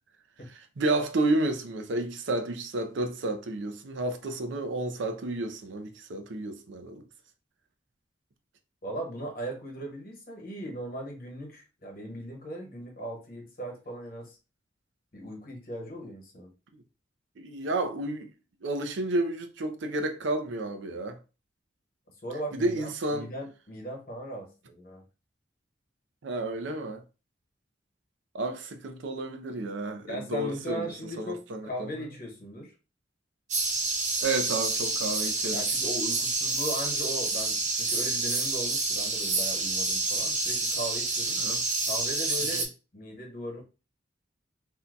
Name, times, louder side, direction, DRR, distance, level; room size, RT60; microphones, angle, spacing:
voice 1, 0.8-7.0 17.4-18.3 18.6-21.2 22.5-23.3 26.2-27.0 28.3-30.9 31.2-31.9 34.2-35.6 41.4-41.6, right 2 dB, 80° right, 0.5 m, -31 dB
voice 2, 8.8-14.4 15.1-16.5 22.2-25.0 30.1-32.7 35.5-41.4 41.9-43.6, right 1 dB, 50° left, 1.2 m, -38 dB
sound 1, 33.5-42.6, right 3 dB, 40° right, 0.8 m, -28 dB
2.7 x 2.2 x 3.8 m
head